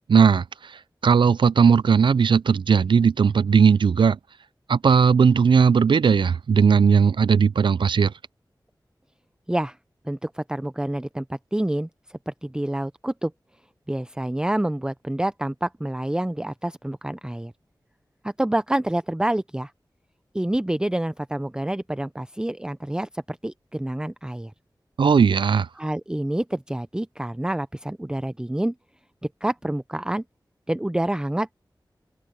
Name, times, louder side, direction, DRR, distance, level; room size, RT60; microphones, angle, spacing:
voice 1, 0.1-4.2 4.7-8.1 25.0-25.7, right 6 dB, 85° right, 0.4 m, -18 dB
voice 2, 10.0-13.3 13.9-17.5 18.2-19.7 20.3-24.5 25.8-28.7 29.4-30.2 30.7-31.5, right 1 dB, 10° right, 0.5 m, -27 dB
open air
wide cardioid pair, 65°, 8 cm